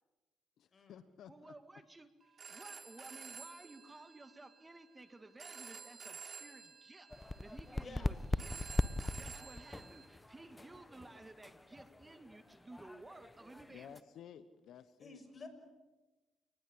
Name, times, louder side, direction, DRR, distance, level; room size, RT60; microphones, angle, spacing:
voice 1, 0.6-1.5 3.0-3.1 13.7-15.2, left 9 dB, 70° left, 12 dB, 1.2 m, -54 dB
voice 2, 1.3-8.6 9.1-13.9, right 2 dB, 20° right, 9 dB, 2.0 m, -55 dB
Telephone, 2.2-10.1, right 5 dB, 45° right, 4.2 m, -52 dB
sound 1, 7.1-14.0, left 2 dB, 15° left, 1.2 m, -41 dB
voice 3, 7.8-8.1 15.0-15.5, left 4 dB, 40° left, 8 dB, 6.1 m, -51 dB
30.0 x 19.5 x 8.7 m, 1.2 s
cardioid pair, 90°, 0 cm